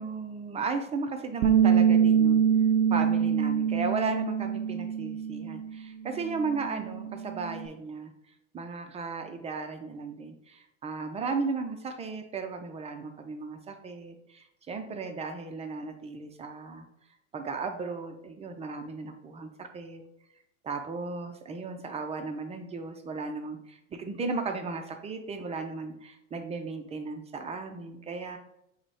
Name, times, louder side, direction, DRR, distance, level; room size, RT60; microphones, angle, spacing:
voice 1, 0.0-2.4 2.9-8.1 8.5-16.9 17.3-20.0 20.6-28.4, right 4 dB, 20° right, 6 dB, 0.4 m, -35 dB
Bass guitar, 1.4-5.8 6.1-7.7, right 8 dB, 80° right, 0.5 m, -25 dB
4.9 x 2.2 x 4.7 m, 0.82 s
hypercardioid pair, 105°, 37 cm